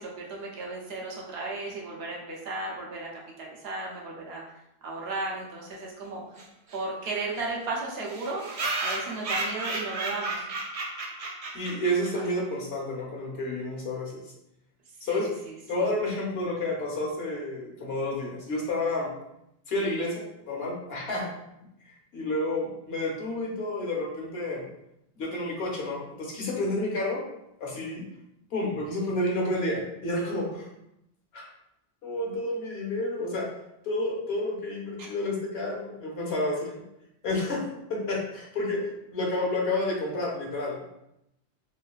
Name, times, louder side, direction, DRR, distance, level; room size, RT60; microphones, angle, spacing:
voice 1, 0.0-3.1 3.4-6.2 6.7-8.4 8.8-10.5 12.1-12.2 15.1-15.3 15.7-15.9 35.0-35.1 36.3-36.4, right 2 dB, 70° right, -2 dB, 0.9 m, -35 dB
sound 1, 6.4-6.5 6.7-6.8 7.0-7.1 7.3-7.4 8.1-12.3, right 2 dB, 50° right, 0.4 m, -33 dB
voice 2, 11.5-14.3 15.0-15.3 15.7-19.1 19.7-21.3 22.1-24.6 25.2-27.2 27.6-28.1 28.5-30.7 31.3-31.4 32.0-33.5 33.8-36.8 37.2-37.6 37.9-38.8 39.1-40.9, left 1 dB, 75° left, -1 dB, 1.0 m, -30 dB
3.1 x 2.5 x 2.3 m, 0.83 s
omnidirectional pair, 1.1 m